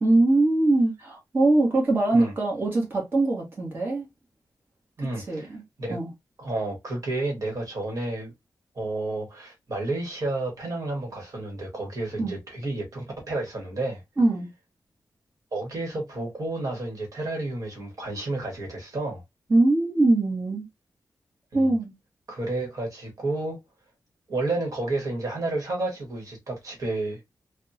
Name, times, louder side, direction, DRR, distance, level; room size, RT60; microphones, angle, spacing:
voice 1, 0.0-4.1 5.2-5.6 5.9-6.1 12.2-12.3 14.2-14.5 19.5-20.7 21.5-21.9, right 2 dB, 30° right, 1.2 m, -22 dB
voice 2, 5.0-6.0 6.4-8.3 8.7-14.0 15.5-19.2 21.5-21.7 22.3-23.6 24.3-27.2, right 2 dB, 55° right, 1.4 m, -31 dB
3.4 x 2.2 x 2.7 m
wide cardioid pair, 135°, 7 cm